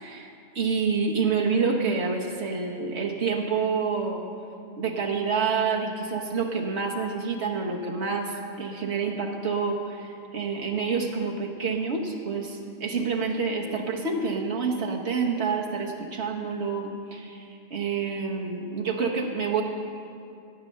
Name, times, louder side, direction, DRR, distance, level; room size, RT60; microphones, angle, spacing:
voice 1, 0.0-4.3 4.8-19.6, right 5 dB, 85° right, 0 dB, 1.4 m, -28 dB
14.5 x 9.0 x 6.4 m, 2.5 s
omnidirectional pair, 1.1 m